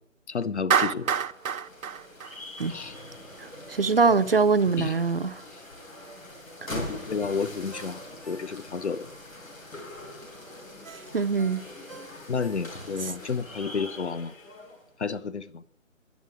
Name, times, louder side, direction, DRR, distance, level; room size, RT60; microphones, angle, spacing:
voice 1, 0.3-1.1 2.7-2.9 4.8-4.9 6.7-9.1 12.3-14.3 15.0-15.6, left 5 dB, 55° left, 0.9 m, -31 dB
Clapping, 0.7-3.0, right 7 dB, 85° right, 0.7 m, -26 dB
sound 1, 0.9-14.9, left 1 dB, 80° left, 6.6 m, -43 dB
voice 2, 3.4-5.4 6.6-6.8 10.9-11.6, right 4 dB, 45° right, 0.6 m, -24 dB
Ringtone, 6.7-8.9 9.3-9.4 10.8-13.1 13.5-13.6, right 4 dB, 10° right, 0.8 m, -49 dB
11.0 x 8.3 x 9.2 m
figure-of-eight pair, 165°, 40 cm